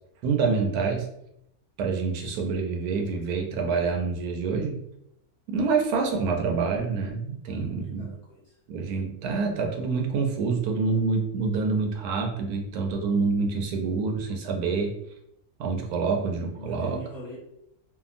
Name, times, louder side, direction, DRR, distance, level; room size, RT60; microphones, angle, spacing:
voice 1, 0.2-1.1 1.8-4.8 5.5-8.1 8.7-14.9 15.6-17.0, right 4 dB, 90° right, 2 dB, 1.1 m, -27 dB
voice 2, 7.5-8.6 16.5-17.4, left 1 dB, 35° left, -7 dB, 0.7 m, -44 dB
2.8 x 2.4 x 2.5 m, 0.78 s
omnidirectional pair, 1.6 m